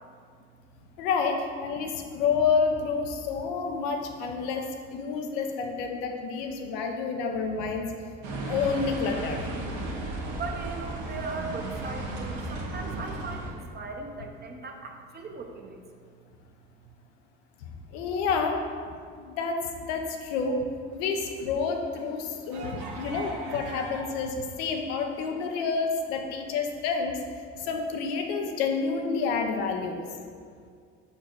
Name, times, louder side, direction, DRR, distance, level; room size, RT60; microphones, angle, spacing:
voice 1, 1.0-4.6 4.9-7.9 8.5-9.5 17.6-18.6 19.1-20.6 20.9-27.2 27.5-30.0, left 5 dB, 85° left, 3 dB, 0.7 m, -29 dB
sound 1, 8.2-13.5, right 2 dB, 65° right, 1.1 m, -34 dB
voice 2, 10.3-15.8, right 3 dB, 30° right, 3 dB, 0.8 m, -38 dB
sound 2, 21.1-24.3 24.6-25.9, right 2 dB, 90° right, 1.0 m, -42 dB
5.0 x 4.3 x 4.5 m, 2.1 s
supercardioid pair, 85°, 31 cm